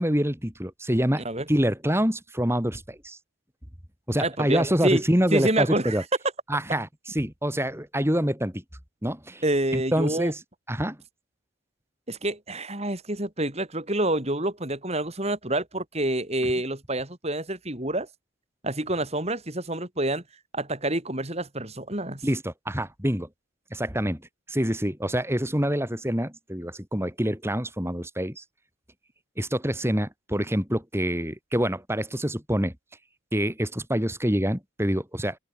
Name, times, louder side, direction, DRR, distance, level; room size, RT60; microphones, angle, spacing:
voice 1, 0.0-3.2 4.1-6.0 6.5-8.6 9.0-9.4 9.7-10.4 10.7-11.0 22.2-23.3 23.7-28.4 29.4-32.7 33.3-35.4, equal, 10° right, 4.9 m, -26 dB
voice 2, 4.2-5.0 5.3-6.0 9.4-10.3 12.1-18.1 18.6-20.2 20.5-22.2, right 1 dB, 30° right, 3.8 m, -27 dB
open air
head